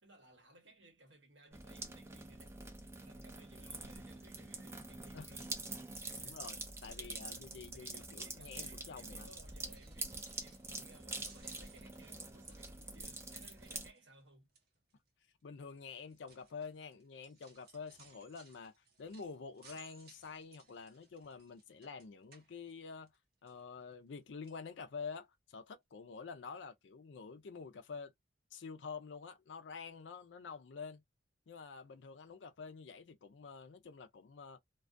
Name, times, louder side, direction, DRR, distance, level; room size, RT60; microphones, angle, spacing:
voice 1, 0.0-2.6 3.0-5.6 6.0-6.4 6.9-14.5, right 1 dB, 70° right, 1.2 m, -61 dB
sound 1, 1.5-13.9, right 2 dB, 15° right, 0.3 m, -46 dB
voice 2, 6.2-9.3 15.4-23.1 23.4-28.1 28.5-31.0 31.5-34.6, left 5 dB, 65° left, 0.4 m, -48 dB
sound 2, 9.6-10.8 11.1-14.2 14.5-14.9 15.6-23.2 23.5-24.2 24.4-24.6 25.1-25.2 25.5-25.6, right 4 dB, 50° right, 0.9 m, -64 dB
2.3 x 2.2 x 2.5 m
head